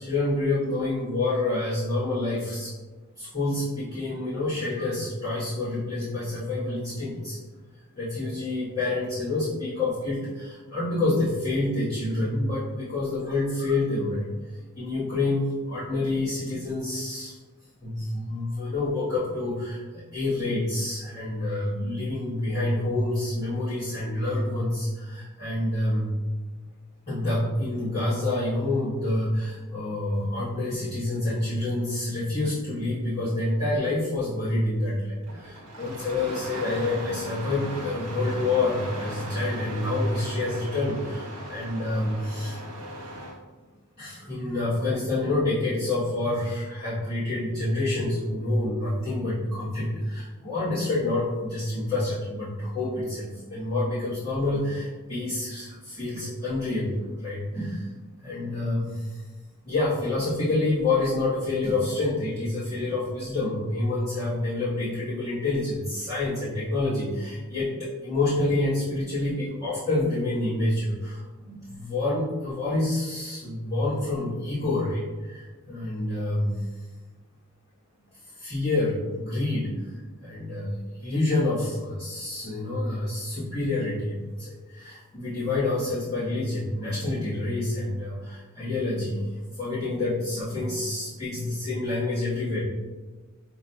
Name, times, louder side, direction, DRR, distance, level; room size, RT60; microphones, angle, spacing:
voice 1, 0.0-2.7 3.2-7.4 7.9-17.4 17.8-26.1 27.1-42.6 44.0-57.0 57.2-57.9 58.2-59.2 59.6-76.7 78.3-79.9 80.2-89.2 89.6-92.6, left 2 dB, 25° left, -12 dB, 1.1 m, -28 dB
Engine starting, 35.2-43.4, right 1 dB, 80° right, 0.9 m, -37 dB
5.9 x 2.2 x 2.6 m, 1.3 s
head